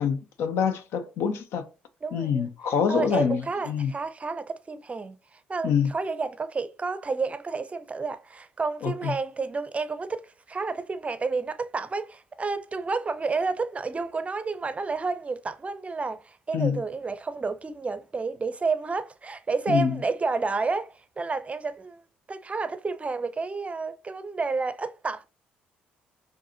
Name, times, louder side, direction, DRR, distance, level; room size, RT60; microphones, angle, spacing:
voice 1, 0.0-1.7 2.1-3.4 3.7-3.9 5.6-5.9 8.8-9.1 16.5-16.8 19.7-20.0, left 7 dB, 65° left, 0.6 m, -25 dB
voice 2, 2.0-2.5 2.9-5.2 5.5-22.0 22.3-25.3, right 4 dB, 30° right, 0.5 m, -30 dB
4.6 x 2.6 x 2.8 m
hypercardioid pair, 50°, 5 cm